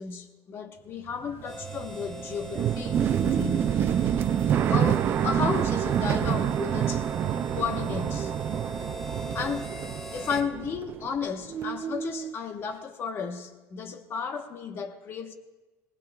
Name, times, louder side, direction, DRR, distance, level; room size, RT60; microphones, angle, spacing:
voice 1, 0.0-3.7 4.7-7.1 7.5-8.3 9.3-9.7 10.1-15.3, left 6 dB, 30° left, 1.0 m, -33 dB
sound 1, 1.1-11.2 11.5-12.3, right 9 dB, 30° right, 0.4 m, -27 dB
Harmonica, 1.4-10.5, equal, 5° left, 1.3 m, -41 dB
23.0 x 19.0 x 2.3 m
cardioid pair, 160°, 8 cm